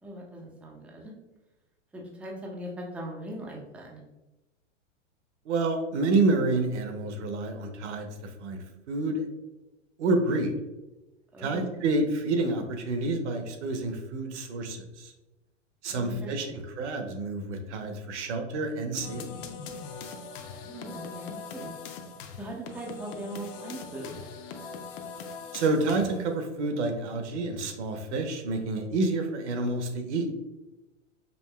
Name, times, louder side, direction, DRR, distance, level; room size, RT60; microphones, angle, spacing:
voice 1, 0.0-1.1 1.9-4.0 11.3-11.7 15.9-16.6 20.6-21.7 22.4-24.2, right 1 dB, 5° right, -1 dB, 0.3 m, -40 dB
voice 2, 5.5-8.1 8.4-9.2 10.0-10.5 11.4-15.1 15.8-16.5 16.8-19.2 25.5-30.3, right 2 dB, 65° right, 5 dB, 0.8 m, -28 dB
sound 1, 19.0-26.3, left 5 dB, 45° left, 0.6 m, -41 dB
5.3 x 2.6 x 2.3 m, 1.1 s
hypercardioid pair, 110°, 38 cm